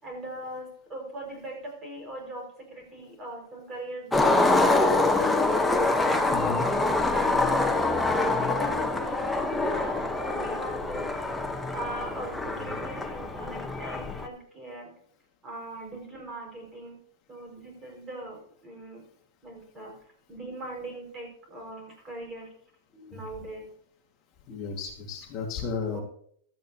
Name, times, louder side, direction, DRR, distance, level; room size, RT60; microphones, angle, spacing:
voice 1, 0.0-5.5 5.9-11.1 11.7-14.9 15.4-17.0 17.3-19.0 19.4-19.9 20.3-22.5 23.1-23.7 25.9-26.0, right 1 dB, 15° right, 1 dB, 5.1 m, -40 dB
Skateboard, 4.1-14.3, left 2 dB, 5° left, 1.0 m, -25 dB
voice 2, 6.3-6.6 22.9-23.2 24.5-26.0, left 5 dB, 35° left, 1 dB, 1.8 m, -34 dB
16.5 x 12.5 x 2.8 m, 0.65 s
supercardioid pair, 150°, 0 cm